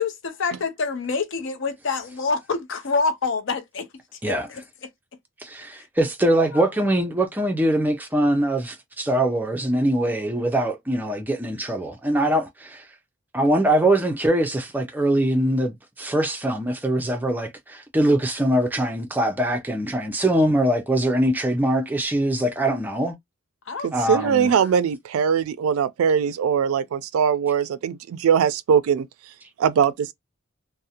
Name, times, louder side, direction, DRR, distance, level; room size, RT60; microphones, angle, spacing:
voice 1, 0.0-3.9 4.3-4.6 5.7-5.9 6.5-6.7 23.7-24.7, left 4 dB, 60° left, 0.5 m, -27 dB
voice 2, 5.4-12.8 13.3-23.1 23.9-24.5, right 1 dB, 10° right, 0.4 m, -22 dB
voice 3, 23.8-29.1 29.6-30.1, right 7 dB, 85° right, 0.3 m, -21 dB
2.5 x 2.0 x 2.7 m
head